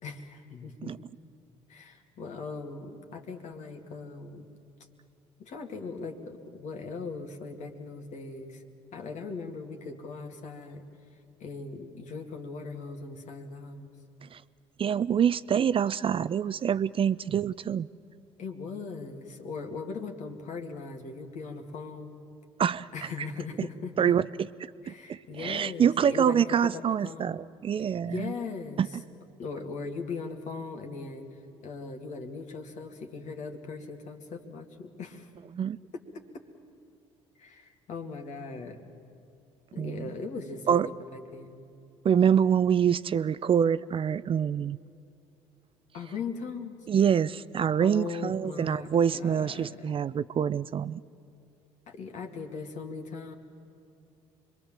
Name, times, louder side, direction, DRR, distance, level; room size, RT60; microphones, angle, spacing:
voice 1, 0.0-0.9 1.7-4.5 5.4-8.6 8.9-10.8 11.4-13.9 18.4-22.2 22.9-23.9 24.8-26.4 26.7-27.4 27.8-29.0 29.4-35.3 37.4-38.8 39.7-41.6 45.9-46.8 47.8-50.0 51.9-53.4, left 4 dB, 60° left, 4 dB, 2.3 m, -39 dB
voice 2, 14.8-17.9 22.6-22.9 23.6-23.7 24.0-24.3 24.9-28.3 28.8-28.9 35.5-35.8 39.8-40.1 40.7-40.9 42.0-44.8 46.9-51.0, right 8 dB, 40° right, 16 dB, 0.5 m, -26 dB
25.5 x 21.5 x 7.5 m, 2.5 s
hypercardioid pair, 60°, 14 cm